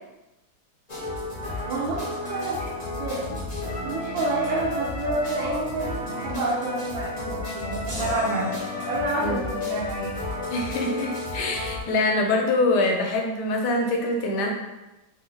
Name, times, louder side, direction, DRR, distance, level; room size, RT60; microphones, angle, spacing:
sound 1, 0.9-11.8, left 2 dB, 35° left, 0.6 m, -32 dB
voice 1, 1.7-3.4 3.8-8.6 8.9-10.2, right 2 dB, 85° right, -5 dB, 1.4 m, -29 dB
sound 2, 7.9-9.2, equal, 55° right, 1.2 m, -40 dB
voice 2, 10.5-14.5, left 2 dB, 70° left, 1 dB, 1.1 m, -24 dB
3.5 x 2.6 x 3.1 m, 1.0 s
omnidirectional pair, 2.0 m